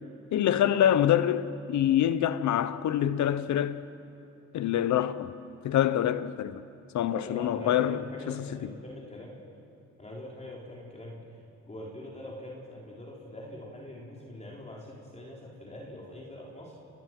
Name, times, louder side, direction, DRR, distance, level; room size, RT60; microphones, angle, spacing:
voice 1, 0.3-3.8 4.5-5.3 5.6-6.6 6.9-8.0 8.3-8.4, left 11 dB, 70° left, 1.0 m, -25 dB
voice 2, 7.1-9.4 10.0-11.2 11.7-16.7, left 1 dB, 20° left, 4.0 m, -43 dB
29.0 x 20.5 x 6.1 m
cardioid pair, 90°, 30 cm